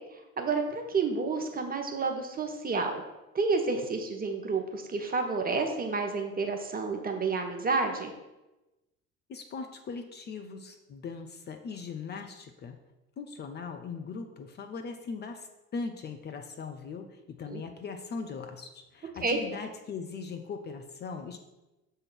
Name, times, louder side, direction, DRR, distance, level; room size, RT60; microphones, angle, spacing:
voice 1, 0.1-3.0 3.3-8.1 17.5-17.6 19.2-19.4, right 4 dB, 20° right, 3 dB, 0.9 m, -30 dB
voice 2, 9.3-12.8 13.2-21.4, left 5 dB, 25° left, 6 dB, 0.5 m, -40 dB
6.5 x 3.7 x 6.2 m, 1.0 s
figure-of-eight pair, 65°, 43 cm